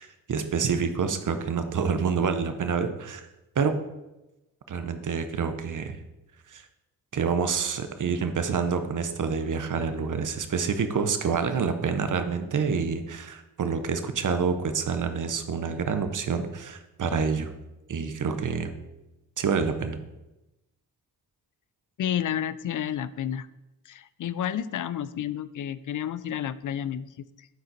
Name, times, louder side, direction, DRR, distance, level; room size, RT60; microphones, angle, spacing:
voice 1, 0.0-3.3 3.6-3.8 4.7-6.0 6.5-6.6 7.1-17.5 17.9-18.7 19.4-20.0, right 5 dB, 55° right, 8 dB, 0.9 m, -27 dB
voice 2, 22.0-23.5 23.9-27.5, left 9 dB, 55° left, 16 dB, 0.5 m, -31 dB
9.2 x 3.9 x 4.1 m, 0.99 s
cardioid pair, 65°, 38 cm